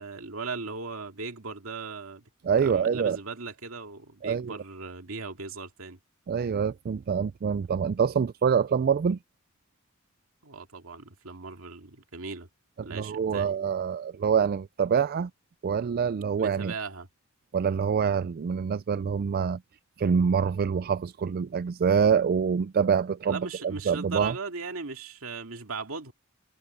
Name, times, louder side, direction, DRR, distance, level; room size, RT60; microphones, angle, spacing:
voice 1, 0.0-2.2 2.6-6.0 10.4-12.5 12.8-13.5 16.4-17.1 23.3-26.1, right 4 dB, 80° right, 2.3 m, -38 dB
voice 2, 2.4-3.2 4.2-4.6 6.3-9.2 12.8-15.3 15.6-16.7 17.5-19.6 20.0-24.3, right 6 dB, 45° right, 0.3 m, -26 dB
head